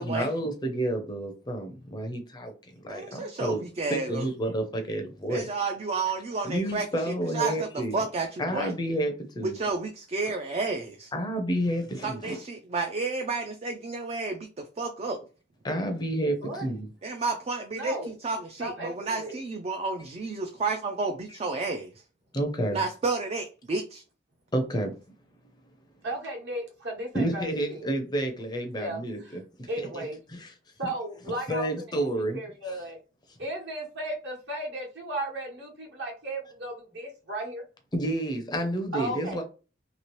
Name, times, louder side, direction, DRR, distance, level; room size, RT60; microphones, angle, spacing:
voice 1, 0.0-3.6 3.9-5.5 6.4-8.0 8.4-9.6 11.1-12.4 15.6-16.9 22.3-22.8 24.5-24.9 27.1-29.7 29.9-30.5 30.8-30.9 31.5-32.8 37.9-39.4, right 1 dB, 20° left, 0.5 m, -30 dB
voice 2, 2.9-4.3 5.3-8.7 9.4-11.1 12.0-15.2 17.0-21.9 22.7-24.0, right 3 dB, 30° right, 0.3 m, -31 dB
voice 3, 17.7-18.1 18.6-19.4 26.0-27.9 28.7-29.0 29.7-30.2 30.8-31.7 32.0-32.1 32.3-33.0 33.4-37.6 38.9-39.4, right 1 dB, 60° right, 1.2 m, -35 dB
2.9 x 2.8 x 3.0 m
head